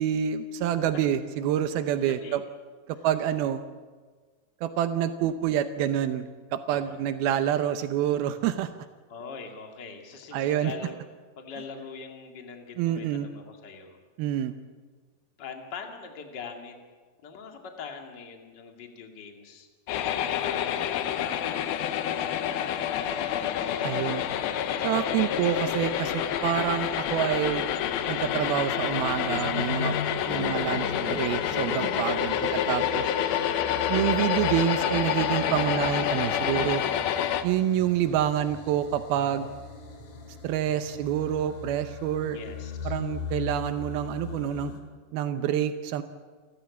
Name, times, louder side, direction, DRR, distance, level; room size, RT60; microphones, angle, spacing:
voice 1, 0.0-2.4 3.0-3.6 4.6-8.9 10.3-10.7 12.8-13.3 14.2-14.5 23.8-24.2 24.8-27.7 28.1-30.0 30.3-33.1 33.9-36.8 37.4-39.5 40.4-42.4 42.8-44.7 45.1-46.0, right 10 dB, 85° right, 10 dB, 2.8 m, -27 dB
voice 2, 2.0-2.4 2.9-3.1 6.6-7.1 9.1-11.0 11.4-14.0 15.4-16.8 17.2-19.7 20.4-23.4 30.0-30.5 39.2-39.6 42.3-43.0, left 5 dB, 35° left, 3 dB, 2.4 m, -43 dB
sound 1, 19.9-37.4, left 10 dB, 85° left, 2.8 m, -28 dB
sound 2, 27.0-44.8, left 4 dB, 60° left, 4.2 m, -39 dB
29.5 x 14.0 x 8.4 m, 1.4 s
omnidirectional pair, 4.3 m